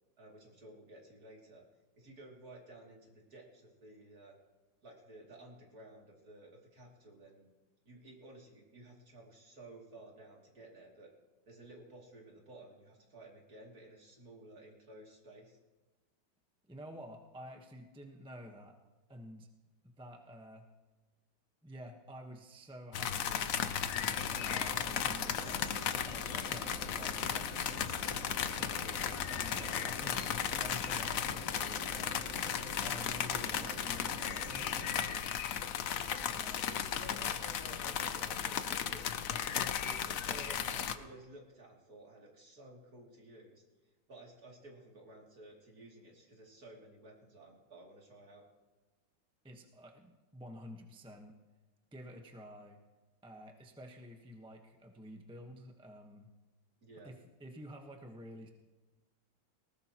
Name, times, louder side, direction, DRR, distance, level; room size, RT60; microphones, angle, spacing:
voice 1, 0.2-1.6 2.0-4.4 4.8-7.5 7.8-11.1 11.4-15.6 36.7-43.6 44.1-48.4 56.8-57.1, right 1 dB, 50° right, -2 dB, 3.3 m, -54 dB
voice 2, 16.6-18.8 19.1-19.5 19.8-20.6 21.6-23.6 24.4-27.8 28.3-32.2 32.8-34.7 36.3-36.9 49.4-51.4 51.9-52.8 53.2-56.3 57.0-58.5, equal, 5° right, 3 dB, 0.9 m, -51 dB
sound 1, 22.9-40.9, left 8 dB, 60° left, 0.9 m, -35 dB
sound 2, 24.0-35.1, right 2 dB, 90° right, 7.2 m, -48 dB
19.5 x 19.5 x 3.0 m, 1.2 s
omnidirectional pair, 2.1 m